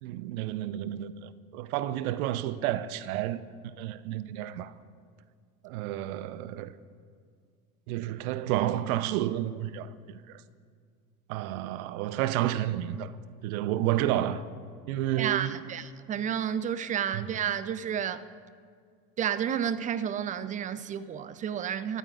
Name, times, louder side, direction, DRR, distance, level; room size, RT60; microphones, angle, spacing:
voice 1, 0.0-3.4 3.8-4.7 5.6-6.8 7.9-10.4 11.3-13.1 13.4-14.4 14.9-15.6 17.1-17.3, right 13 dB, 60° right, 0.8 m, -31 dB
voice 2, 15.2-18.2 19.2-22.0, right 9 dB, 15° right, 0.4 m, -31 dB
28.0 x 13.5 x 2.5 m
hypercardioid pair, 75°, 49 cm